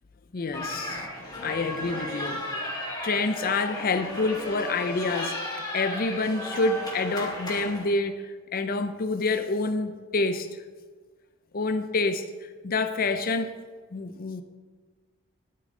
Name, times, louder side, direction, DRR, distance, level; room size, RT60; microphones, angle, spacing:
voice 1, 0.3-10.5 11.5-13.5 13.9-14.4, left 3 dB, 45° left, 8 dB, 0.6 m, -28 dB
sound 1, 0.5-7.8, left 1 dB, 20° left, 3.1 m, -34 dB
12.0 x 8.7 x 3.8 m, 1.4 s
head